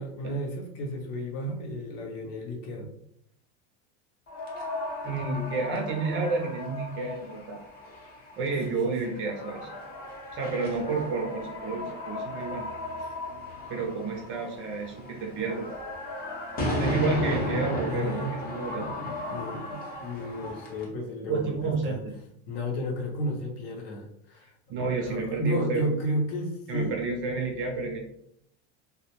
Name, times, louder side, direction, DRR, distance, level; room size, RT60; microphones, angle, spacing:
voice 1, 0.0-2.9 8.6-8.9 13.0-13.2 17.9-18.3 18.7-22.0 22.5-24.5 24.8-26.9, equal, 60° left, 1 dB, 0.8 m, -33 dB
sound 1, 4.3-20.8, left 1 dB, 25° left, 0.6 m, -35 dB
voice 2, 5.0-7.6 8.4-9.7 10.3-12.7 13.7-15.7 16.8-18.9 21.3-22.2 24.7-25.9 26.7-28.0, right 4 dB, 35° right, 1 dB, 0.5 m, -30 dB
2.2 x 2.0 x 2.9 m, 0.71 s
supercardioid pair, 145°, 35 cm